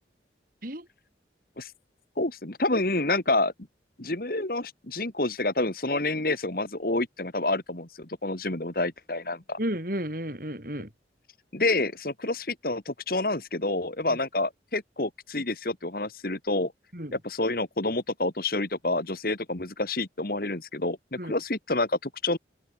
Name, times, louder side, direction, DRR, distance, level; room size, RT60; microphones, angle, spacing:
voice 1, 2.2-3.5 4.0-9.6 11.5-16.7 17.1-22.4, left 2 dB, 50° left, 2.2 m, -28 dB
voice 2, 9.6-10.9 14.1-14.2 16.9-17.1 21.2-21.4, equal, 50° right, 5.5 m, -32 dB
open air
head